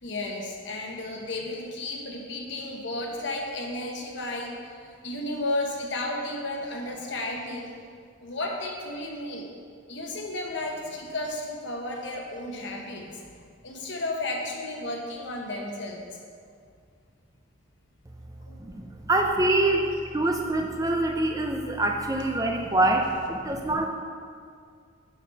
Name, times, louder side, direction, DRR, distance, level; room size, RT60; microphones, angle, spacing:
voice 1, 0.0-7.8 8.2-9.5 9.9-13.2 13.6-16.0 18.5-18.6 23.5-23.6, left 2 dB, 60° left, 0 dB, 1.1 m, -33 dB
voice 2, 18.6-23.9, right 2 dB, 15° right, 2 dB, 0.4 m, -25 dB
7.2 x 5.1 x 5.8 m, 2.2 s
head